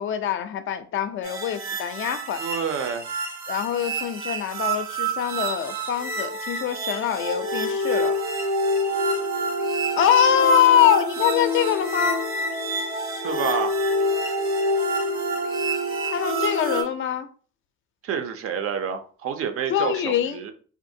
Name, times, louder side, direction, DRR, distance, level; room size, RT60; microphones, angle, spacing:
voice 1, 0.0-2.4 3.5-8.1 10.0-12.2 16.1-17.3 19.7-20.4, left 9 dB, 45° left, 0.4 m, -23 dB
sound 1, 1.2-16.8, right 1 dB, 65° right, 1.0 m, -27 dB
voice 2, 2.4-3.1 13.2-13.7 18.0-20.5, right 7 dB, 50° right, 0.5 m, -28 dB
2.5 x 2.5 x 2.7 m
supercardioid pair, 85°, 30 cm